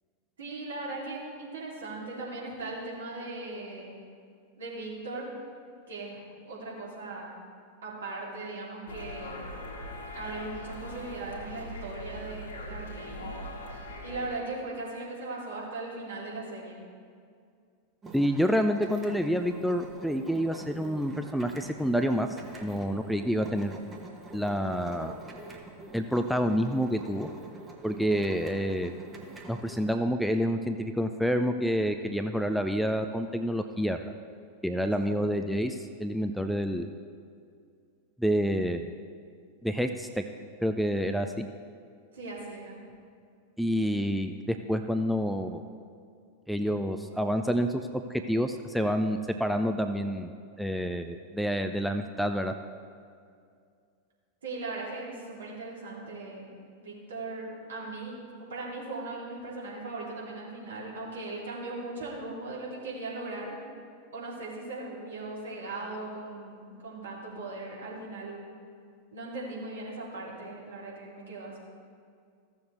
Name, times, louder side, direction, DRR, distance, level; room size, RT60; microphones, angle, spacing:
voice 1, 0.4-3.9 4.6-5.3 5.9-7.4 7.8-9.4 10.1-13.3 14.0-16.8 34.8-34.9 42.1-42.8 54.4-56.5 56.8-63.6 64.1-68.4 69.1-71.6, right 2 dB, 65° right, -5 dB, 2.6 m, -38 dB
sound 1, 8.9-14.3, left 1 dB, 60° left, 1.6 m, -41 dB
sound 2, 18.0-30.0, right 2 dB, 20° right, 1.2 m, -46 dB
voice 2, 18.1-22.3 22.6-23.7 24.3-25.2 25.9-27.3 27.8-28.9 29.5-34.0 34.6-36.9 38.2-38.8 39.6-40.2 40.6-41.5 43.6-45.6 46.5-50.3 50.6-52.5, equal, ahead, 7 dB, 0.4 m, -28 dB
15.0 x 7.1 x 3.1 m, 2.3 s
figure-of-eight pair, 90°, 0 cm